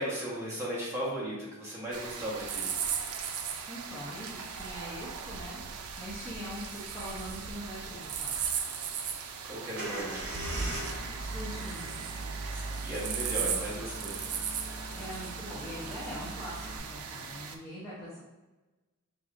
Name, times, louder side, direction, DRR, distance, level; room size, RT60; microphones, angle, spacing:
voice 1, 0.0-2.7 9.4-10.2 12.5-14.3, equal, 15° right, -8 dB, 1.1 m, -36 dB
sound 1, 1.9-17.6, right 7 dB, 85° right, 0.4 m, -38 dB
voice 2, 3.7-8.3 11.2-12.1 15.0-18.2, equal, 5° left, -11 dB, 0.7 m, -42 dB
sound 2, 9.8-16.8, right 2 dB, 55° right, 1.0 m, -39 dB
5.0 x 2.7 x 2.5 m, 1.2 s
head